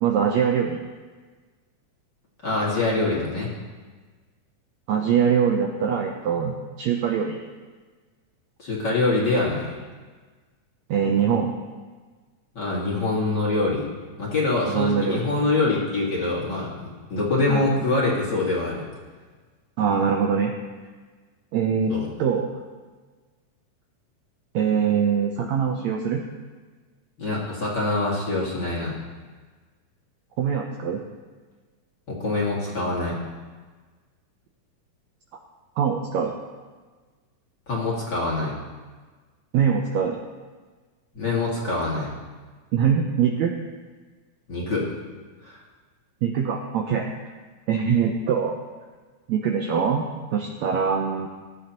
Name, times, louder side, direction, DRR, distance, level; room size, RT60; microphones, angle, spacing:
voice 1, 0.0-0.8 4.9-7.4 10.9-11.5 14.7-15.2 17.5-17.7 19.8-20.5 21.5-22.5 24.5-26.2 30.4-31.0 35.8-36.3 39.5-40.2 42.7-43.5 46.2-47.1 47.7-48.5 49.3-51.3, right 7 dB, 75° right, 2 dB, 1.7 m, -23 dB
voice 2, 2.4-3.5 8.6-9.8 12.5-13.9 14.2-18.9 21.9-22.1 27.2-29.0 32.1-33.2 37.7-38.6 41.1-42.1 44.5-44.9 45.4-45.6, left 2 dB, 35° left, -5 dB, 2.2 m, -24 dB
16.5 x 11.5 x 3.0 m, 1.4 s
omnidirectional pair, 3.9 m